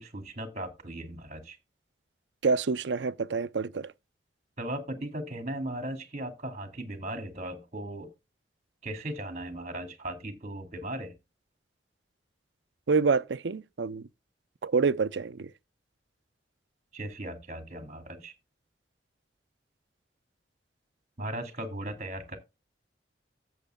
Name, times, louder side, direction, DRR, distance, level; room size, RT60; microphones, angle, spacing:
voice 1, 0.0-1.6 4.6-8.1 8.8-11.1 16.9-18.3 21.2-22.4, right 1 dB, 40° right, 2.4 m, -37 dB
voice 2, 2.4-3.9 12.9-14.1 14.6-15.5, right 4 dB, 85° right, 0.6 m, -27 dB
15.5 x 7.3 x 2.2 m
head